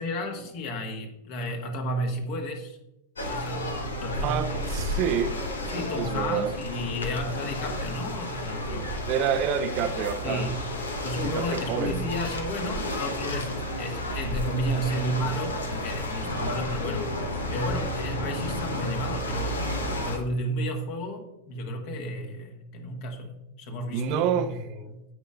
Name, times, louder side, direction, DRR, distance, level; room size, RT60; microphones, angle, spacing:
voice 1, 0.0-2.8 3.3-3.7 4.0-4.6 5.7-9.0 10.2-10.6 11.0-17.2 17.5-24.4 24.7-25.0, equal, 45° left, 1.6 m, -32 dB
sound 1, 3.2-20.2, left 1 dB, 70° left, 1.2 m, -32 dB
voice 2, 4.2-5.4 5.9-6.5 9.1-10.5 11.3-12.1 23.9-24.6, right 8 dB, 40° right, 0.6 m, -28 dB
16.0 x 5.5 x 2.5 m
figure-of-eight pair, 90°, 0 cm